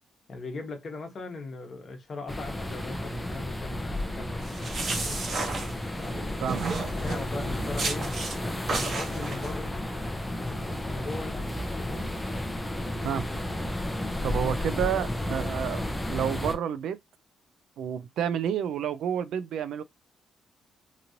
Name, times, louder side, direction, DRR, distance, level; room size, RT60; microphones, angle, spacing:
voice 1, 0.3-4.5 4.9-5.2 6.0-6.5 7.0-8.1 8.6-9.9 10.2-11.5 11.8-12.1, left 3 dB, 35° left, 1.0 m, -39 dB
sound 1, 2.3-16.6, left 1 dB, 5° left, 0.5 m, -32 dB
sound 2, 4.4-6.1 6.5-7.3 7.8-8.4 8.7-9.5, right 3 dB, 45° right, 0.8 m, -32 dB
voice 2, 14.2-15.8 16.1-17.0 17.8-19.8, right 8 dB, 85° right, 0.4 m, -29 dB
2.9 x 2.5 x 2.7 m
cardioid pair, 150°, 0 cm